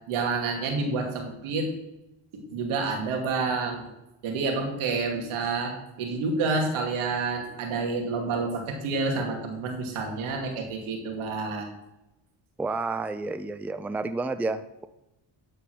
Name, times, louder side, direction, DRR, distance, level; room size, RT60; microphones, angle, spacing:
voice 1, 0.1-1.7 2.3-3.8 4.2-11.7, right 4 dB, 85° right, 2 dB, 2.5 m, -29 dB
voice 2, 12.6-14.9, right 3 dB, 5° right, 12 dB, 0.4 m, -30 dB
12.5 x 4.5 x 6.1 m, 0.91 s
cardioid pair, 80°, 48 cm